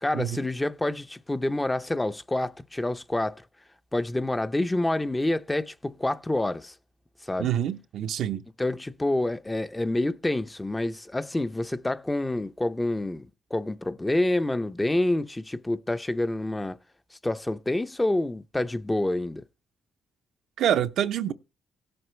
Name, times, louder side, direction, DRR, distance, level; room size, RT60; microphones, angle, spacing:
voice 1, 0.0-3.4 3.9-6.7 7.2-7.5 8.6-16.8 17.1-19.4, left 1 dB, 15° left, 0.6 m, -27 dB
voice 2, 7.4-8.4 20.6-21.3, right 10 dB, 75° right, 0.7 m, -26 dB
17.0 x 7.8 x 3.2 m
cardioid pair, 90°, 0 cm